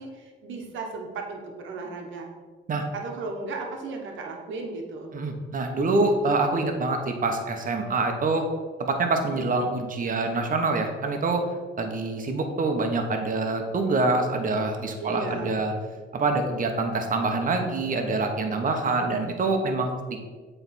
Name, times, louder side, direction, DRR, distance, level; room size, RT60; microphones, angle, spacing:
voice 1, 0.0-2.3 2.9-5.1 15.0-15.6, right 3 dB, 75° right, 2 dB, 1.2 m, -35 dB
voice 2, 5.1-8.5 8.8-11.4 11.8-15.7 16.1-20.2, right 3 dB, 45° right, 4 dB, 1.0 m, -25 dB
7.8 x 3.4 x 4.2 m, 1.4 s
cardioid pair, 90°, 20 cm